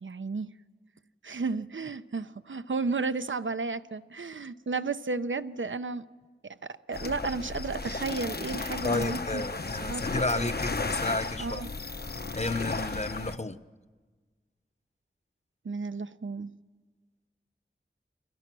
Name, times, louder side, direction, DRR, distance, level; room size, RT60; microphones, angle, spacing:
voice 1, 0.0-0.5 1.2-6.0 6.4-9.4 9.7-10.0 10.4-10.5 11.4-11.7 15.6-16.5, right 4 dB, 80° right, 12 dB, 0.8 m, -33 dB
sound 1, 6.9-13.4, left 3 dB, 55° left, 0.9 m, -34 dB
voice 2, 8.8-11.6 12.4-13.6, left 2 dB, 35° left, 13 dB, 1.0 m, -31 dB
29.5 x 24.5 x 6.2 m, 1.4 s
wide cardioid pair, 55°, 20 cm